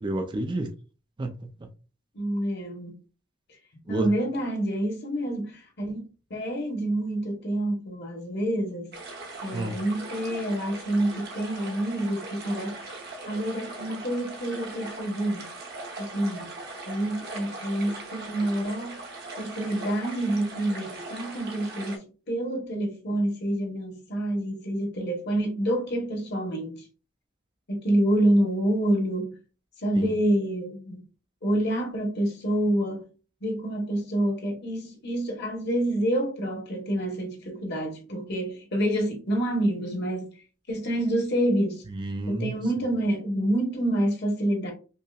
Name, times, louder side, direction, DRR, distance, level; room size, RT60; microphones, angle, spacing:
voice 1, 0.0-0.7 1.2-1.3 3.9-4.1 9.5-9.8 30.0-30.2 41.9-42.5, right 1 dB, 25° right, 0.4 m, -29 dB
voice 2, 2.1-2.9 3.9-6.0 6.3-8.9 9.4-12.9 13.3-15.5 16.0-16.5 16.9-19.0 19.4-26.8 27.7-29.4 29.8-31.0 31.4-33.0 33.4-40.3 40.7-41.8 42.3-44.7, right 1 dB, 55° left, 1.1 m, -27 dB
sound 1, 8.9-22.0, right 2 dB, 55° right, 0.9 m, -40 dB
5.3 x 2.0 x 2.3 m
head